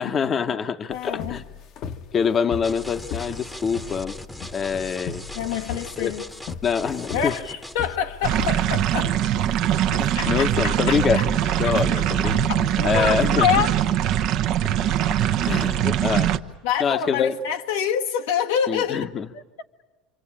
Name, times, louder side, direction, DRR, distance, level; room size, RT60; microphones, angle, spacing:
voice 1, 0.0-1.4 2.1-4.2 4.5-5.2 6.0-6.1 6.6-7.3 9.9-12.4 12.8-13.5 15.5-16.3 16.8-17.3 18.7-19.3, left 6 dB, 35° left, 1.0 m, -25 dB
voice 2, 0.9-1.4 5.3-6.2 7.1-9.2 9.9-11.3 11.7-12.1 12.8-13.7 16.6-19.1 19.3-19.4, left 8 dB, 80° left, 1.4 m, -26 dB
sound 1, 0.9-13.1, left 7 dB, 55° left, 1.1 m, -37 dB
sound 2, 2.6-8.0, left 1 dB, 5° left, 1.0 m, -39 dB
sound 3, 8.2-16.4, right 11 dB, 60° right, 0.9 m, -22 dB
27.0 x 24.5 x 8.7 m
supercardioid pair, 95°, 0 cm